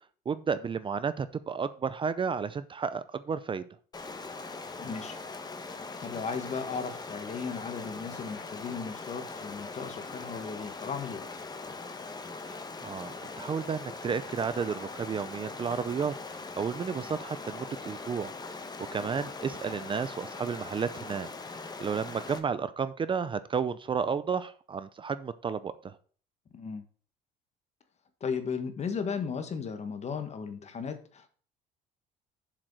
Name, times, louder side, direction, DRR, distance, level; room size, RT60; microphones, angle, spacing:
voice 1, 0.3-3.6 12.4-18.6 18.9-26.0, right 6 dB, 30° right, 14 dB, 0.5 m, -32 dB
Stream, 3.9-22.4, left 3 dB, 25° left, 1.1 m, -41 dB
voice 2, 4.8-5.2 5.6-11.2 26.5-26.8 28.2-31.3, left 5 dB, 40° left, 8 dB, 1.5 m, -36 dB
7.4 x 5.0 x 6.3 m, 0.44 s
cardioid pair, 110°, 17 cm